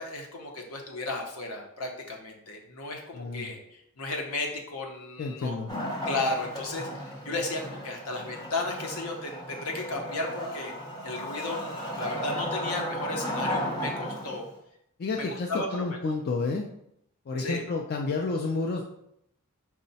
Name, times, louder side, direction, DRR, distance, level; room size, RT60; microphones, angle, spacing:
voice 1, 0.0-5.6 6.1-10.7 11.0-14.4 15.2-16.0 17.4-17.6, left 2 dB, 75° left, 1 dB, 0.8 m, -34 dB
voice 2, 3.1-3.5 5.2-5.7 15.0-16.7 17.3-19.0, left 3 dB, 45° left, 1 dB, 0.4 m, -30 dB
Wood, 5.7-14.6, equal, 20° left, 0.7 m, -35 dB
4.6 x 2.1 x 4.0 m, 0.75 s
head